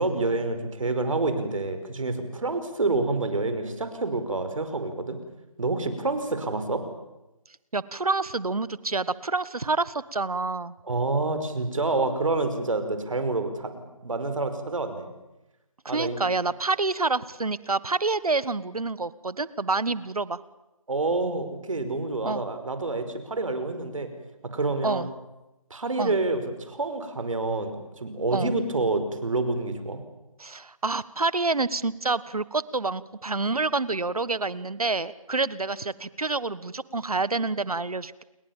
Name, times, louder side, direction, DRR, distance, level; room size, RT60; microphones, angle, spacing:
voice 1, 0.0-5.2 5.6-6.8 10.8-15.1 15.9-16.3 20.9-24.1 24.4-25.1 25.7-30.0, right 3 dB, 65° right, 9 dB, 5.2 m, -28 dB
voice 2, 7.7-10.7 15.8-20.4 22.2-22.4 24.8-25.1 26.0-26.1 28.3-28.5 30.4-38.2, right 3 dB, 90° right, 18 dB, 1.5 m, -28 dB
29.5 x 22.0 x 7.3 m, 0.96 s
figure-of-eight pair, 165°, 18 cm